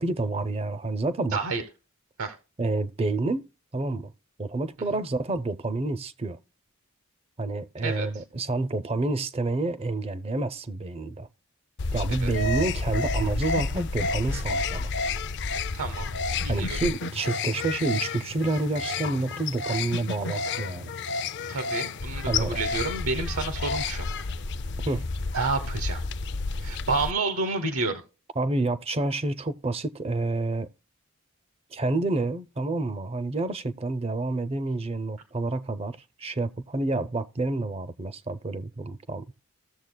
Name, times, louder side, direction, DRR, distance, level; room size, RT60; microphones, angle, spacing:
voice 1, 0.0-1.4 2.6-3.4 3.7-4.1 4.4-6.4 7.4-11.3 11.9-14.9 16.5-20.9 22.3-22.6 24.9-25.1 28.4-30.7 31.7-39.2, right 2 dB, 25° right, 0.5 m, -28 dB
voice 2, 1.3-1.6 2.2-2.4 7.8-8.1 12.2-12.3 15.7-16.1 16.4-16.8 21.5-24.1 25.3-26.0 26.6-28.0, right 3 dB, 85° right, 1.0 m, -29 dB
sound 1, 11.8-27.1, left 3 dB, 55° left, 0.5 m, -30 dB
16.0 x 7.0 x 2.2 m
head